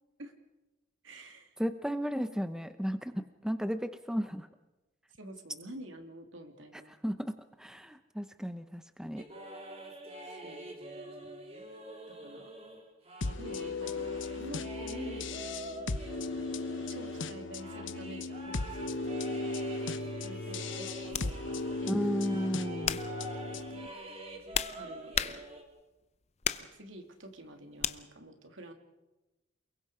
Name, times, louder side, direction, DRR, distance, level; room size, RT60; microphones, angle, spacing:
voice 1, 1.0-1.6 5.2-6.9 10.2-10.8 12.0-12.5 13.2-15.3 16.9-19.3 20.2-22.1 23.5-23.7 24.8-25.4 26.6-28.7, right 1 dB, 75° right, 5 dB, 2.9 m, -48 dB
voice 2, 1.6-4.5 7.0-9.2 21.9-23.0, equal, 5° right, 10 dB, 0.7 m, -34 dB
sound 1, 9.2-21.9 22.2-25.6, right 1 dB, 30° right, 3.3 m, -46 dB
sound 2, 13.2-23.9, left 3 dB, 75° left, 1.0 m, -37 dB
sound 3, 19.8-20.0 21.1-21.3 22.0-22.3 22.8-23.2 24.1-25.8 26.4-26.8 27.8-28.0, left 8 dB, 35° left, 0.7 m, -34 dB
29.0 x 21.5 x 5.0 m, 1.1 s
head